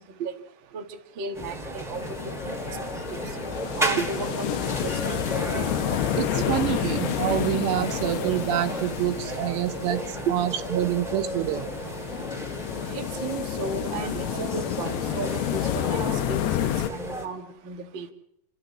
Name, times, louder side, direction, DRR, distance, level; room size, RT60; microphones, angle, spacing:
voice 1, 1.2-2.2 2.4-2.6 3.1-3.2 3.8-5.0 6.4-6.5 6.8-6.9 10.3-10.4 12.9-18.1, right 5 dB, 55° right, 3 dB, 1.4 m, -34 dB
sound 1, 1.3-17.3, right 1 dB, ahead, 1.4 m, -34 dB
sound 2, 1.9-16.9, left 12 dB, 75° left, 2.9 m, -30 dB
voice 2, 6.2-11.7, right 12 dB, 80° right, 6 dB, 3.3 m, -27 dB
27.5 x 13.0 x 7.5 m, 0.77 s
omnidirectional pair, 5.1 m